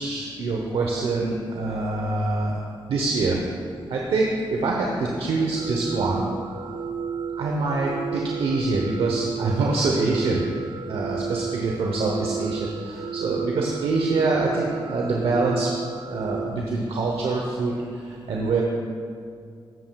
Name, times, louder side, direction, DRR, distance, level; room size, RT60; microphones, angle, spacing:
voice 1, 0.0-2.6 2.9-3.4 3.9-6.2 7.4-10.4 10.9-15.7 16.0-18.6, right 3 dB, 85° right, -1 dB, 0.8 m, -25 dB
sound 1, 5.5-16.5, right 6 dB, 45° right, 0.4 m, -32 dB
13.5 x 7.8 x 2.3 m, 2.3 s
cardioid pair, 85°, 9 cm